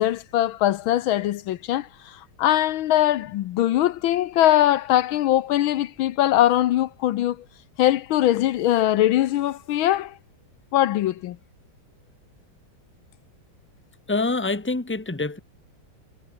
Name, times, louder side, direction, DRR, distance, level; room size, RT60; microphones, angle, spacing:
voice 1, 0.0-1.9 2.4-7.4 7.8-10.1 10.7-11.4, left 13 dB, 80° left, 1.6 m, -21 dB
voice 2, 14.1-15.4, left 3 dB, 5° left, 1.6 m, -25 dB
omnidirectional pair, 2.3 m